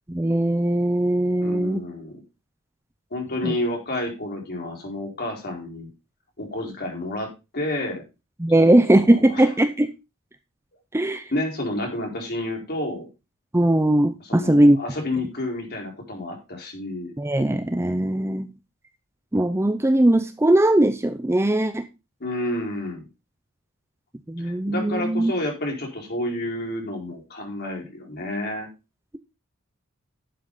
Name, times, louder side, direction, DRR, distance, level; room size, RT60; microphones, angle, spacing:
voice 1, 0.1-1.8 3.4-3.5 8.4-9.9 10.9-11.2 13.5-14.8 17.2-18.5 19.3-21.9 24.3-25.3, right 1 dB, 10° right, 10 dB, 0.6 m, -19 dB
voice 2, 1.4-2.2 3.1-5.9 6.4-8.0 8.6-9.5 11.3-13.1 14.2-17.1 22.2-23.1 24.4-28.7, left 1 dB, 45° left, 0 dB, 4.5 m, -30 dB
11.5 x 7.4 x 3.9 m, 0.27 s
head